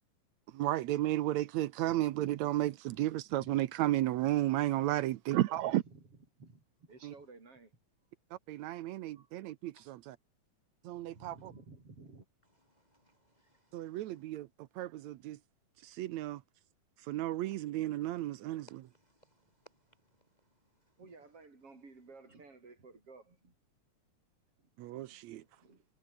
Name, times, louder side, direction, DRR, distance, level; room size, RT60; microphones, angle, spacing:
voice 1, 0.5-5.8 7.0-7.1 8.5-10.2 10.8-11.5 13.7-14.5 14.8-15.4 15.8-16.4 17.1-18.8 24.8-25.4, right 15 dB, 75° right, 1.9 m, -33 dB
voice 2, 5.6-6.1 6.4-7.8 9.1-9.3 9.7-9.9 11.0-12.3 21.0-23.5 24.6-24.7 25.1-25.9, right 3 dB, 45° right, 7.6 m, -55 dB
voice 3, 12.7-14.0 18.7-19.7, right 1 dB, 15° left, 3.5 m, -65 dB
omnidirectional pair, 3.5 m